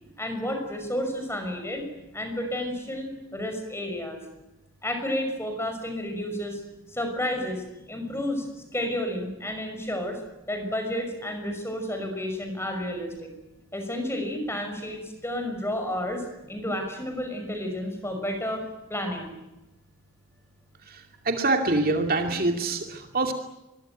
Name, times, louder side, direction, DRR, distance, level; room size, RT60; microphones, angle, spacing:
voice 1, 0.2-1.8 2.1-4.2 4.8-6.6 6.9-10.2 10.5-13.3 13.7-18.6 18.9-19.3, left 1 dB, 10° left, 6 dB, 5.9 m, -31 dB
voice 2, 21.3-23.3, right 2 dB, 45° right, 4 dB, 2.5 m, -25 dB
25.0 x 22.5 x 9.3 m, 0.96 s
head